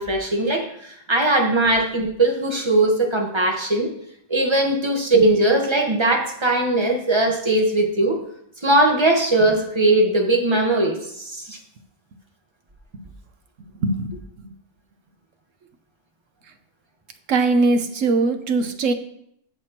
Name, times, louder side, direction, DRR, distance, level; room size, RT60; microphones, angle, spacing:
voice 1, 0.0-3.9 4.3-8.2 8.6-11.6, right 2 dB, 25° right, 2 dB, 1.2 m, -20 dB
voice 2, 17.3-18.9, right 3 dB, 90° right, 7 dB, 1.2 m, -20 dB
14.5 x 6.1 x 2.9 m, 0.71 s
omnidirectional pair, 1.3 m